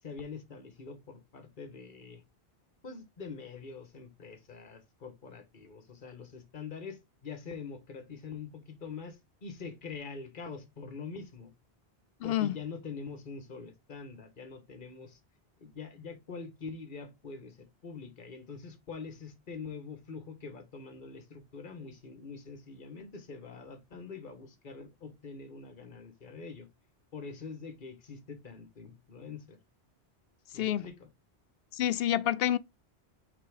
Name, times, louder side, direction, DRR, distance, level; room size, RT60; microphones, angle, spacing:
voice 1, 0.0-2.2 2.8-11.5 12.2-15.2 15.6-26.7 27.1-29.6 30.5-31.1, left 5 dB, 50° left, 1.5 m, -44 dB
voice 2, 12.2-12.5 30.5-30.8 31.7-32.6, left 12 dB, 70° left, 0.7 m, -28 dB
5.9 x 3.5 x 4.8 m
omnidirectional pair, 1.1 m